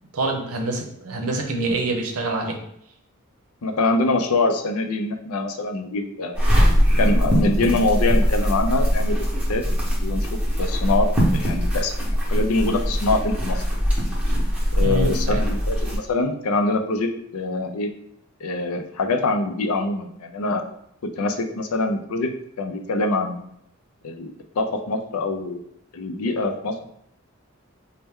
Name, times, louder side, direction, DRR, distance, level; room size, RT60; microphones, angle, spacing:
voice 1, 0.1-2.6 14.8-15.4, right 2 dB, 90° right, 3 dB, 0.7 m, -26 dB
voice 2, 3.6-6.4 7.0-9.6 10.0-13.6 14.8-17.9 18.4-20.6 21.0-22.3 22.6-23.4 24.0-25.6 25.9-26.8, left 2 dB, 90° left, 6 dB, 0.5 m, -24 dB
sound 1, 6.3-16.0, equal, 5° right, 0.8 m, -21 dB
4.2 x 2.1 x 3.5 m, 0.74 s
head